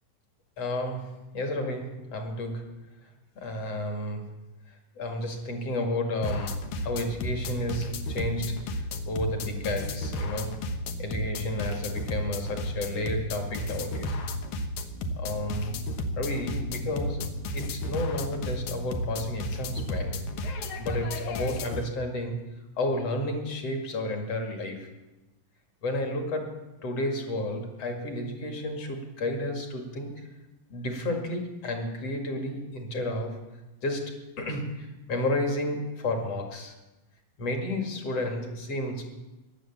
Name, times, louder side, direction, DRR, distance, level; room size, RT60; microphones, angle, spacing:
voice 1, 0.6-2.8 3.4-4.4 4.7-10.6 11.0-14.2 15.2-15.8 16.2-22.5 22.8-24.9 25.8-30.3 30.7-33.4 33.8-36.8 37.4-39.0, left 1 dB, 50° left, 3 dB, 3.0 m, -32 dB
sound 1, 6.2-21.8, left 1 dB, 65° left, 2.4 m, -33 dB
17.5 x 11.0 x 7.4 m, 1.0 s
omnidirectional pair, 3.9 m